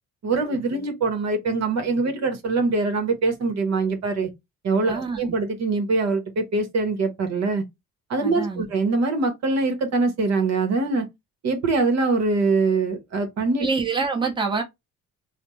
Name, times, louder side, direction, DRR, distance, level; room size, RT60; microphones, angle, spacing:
voice 1, 0.2-4.3 4.6-7.6 8.1-11.1 11.4-13.7, right 3 dB, 60° right, 1.0 m, -23 dB
voice 2, 4.9-5.2 8.2-8.7 13.6-14.6, right 4 dB, 15° right, 1.0 m, -25 dB
3.3 x 2.1 x 3.1 m
cardioid pair, 90°, 30 cm